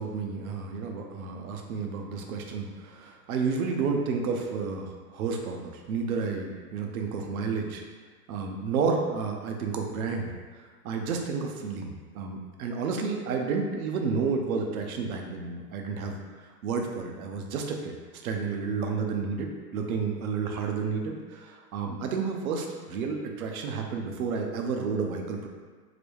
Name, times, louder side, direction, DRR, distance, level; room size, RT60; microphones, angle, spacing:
voice 1, 0.0-7.8 8.3-16.2 16.6-18.0 18.2-25.5, right 5 dB, 60° right, 2 dB, 0.6 m, -31 dB
3.9 x 2.2 x 3.1 m, 1.5 s
hypercardioid pair, 115°, 48 cm